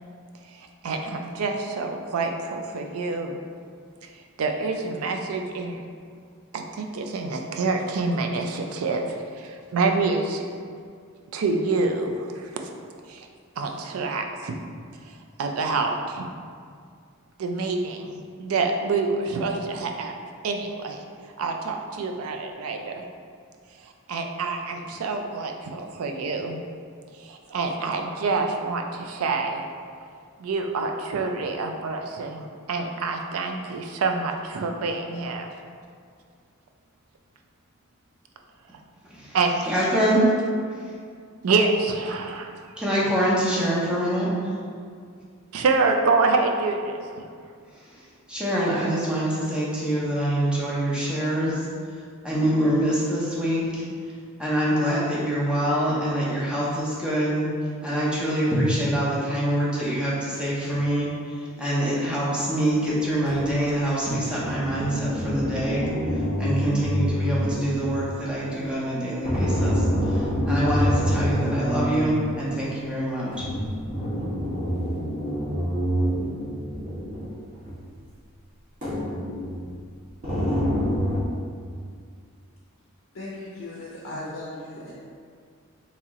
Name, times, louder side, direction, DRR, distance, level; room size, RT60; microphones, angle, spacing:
voice 1, 0.5-3.4 4.0-4.1 4.4-5.9 6.5-10.4 11.3-12.5 13.1-13.3 13.6-14.6 15.0-16.3 17.4-20.2 20.4-21.0 21.4-23.0 23.8-26.6 27.2-29.6 30.4-35.5 39.3-39.7 41.4-42.5 45.5-47.2, right 3 dB, 90° right, 4 dB, 0.4 m, -27 dB
voice 2, 39.0-39.4 39.6-40.3 42.8-44.5 47.7-51.7 52.2-53.8 54.4-57.5 57.8-65.8 66.4-73.4, right 1 dB, 5° right, -7 dB, 0.7 m, -25 dB
sound 1, 63.2-63.5 64.2-68.1 69.2-72.3 73.3-77.3 77.6-77.7 78.8-79.7 80.2-81.2, equal, 40° right, 1.0 m, -26 dB
voice 3, 83.1-84.9, left 1 dB, 65° left, -6 dB, 0.5 m, -37 dB
3.0 x 2.9 x 3.6 m, 2.2 s
head